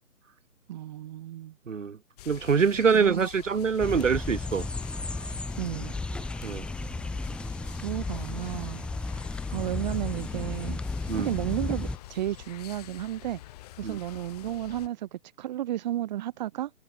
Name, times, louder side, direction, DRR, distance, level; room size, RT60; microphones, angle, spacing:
voice 1, 0.7-1.5 2.9-3.3 5.6-5.9 7.6-8.8 9.5-10.8 11.2-13.4 13.8-16.7, right 13 dB, 30° right, 3.3 m, -33 dB
voice 2, 1.7-2.0 2.3-4.7 6.4-6.6 11.1-11.3 13.8-14.0, right 6 dB, 55° right, 5.0 m, -24 dB
sound 1, 2.2-14.9, left 17 dB, 25° left, 4.6 m, -47 dB
sound 2, 3.8-12.0, left 2 dB, ahead, 2.3 m, -34 dB
figure-of-eight pair, 140°, 45 cm